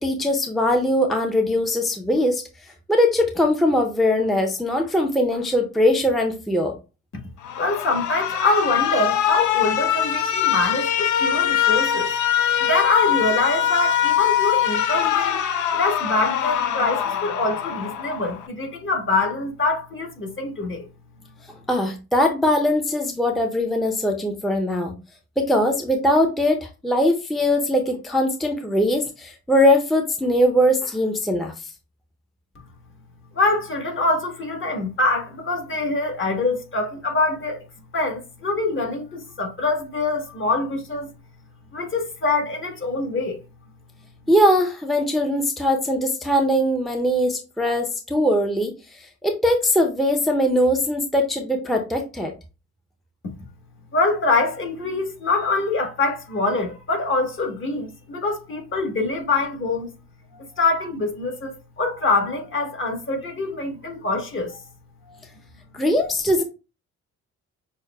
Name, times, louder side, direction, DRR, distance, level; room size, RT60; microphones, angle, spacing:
voice 1, 0.0-2.4 2.9-6.7 21.7-24.9 25.4-31.5 44.3-52.3 65.7-66.4, left 1 dB, ahead, 0.5 m, -21 dB
Alarm, 7.4-18.5, left 10 dB, 75° left, 0.6 m, -23 dB
voice 2, 7.6-12.1 12.6-15.4 15.7-20.9 33.3-37.6 37.9-41.1 41.7-43.4 53.9-59.9 60.4-64.6, left 3 dB, 40° left, 1.3 m, -24 dB
6.3 x 2.1 x 2.2 m
cardioid pair, 90°, 30 cm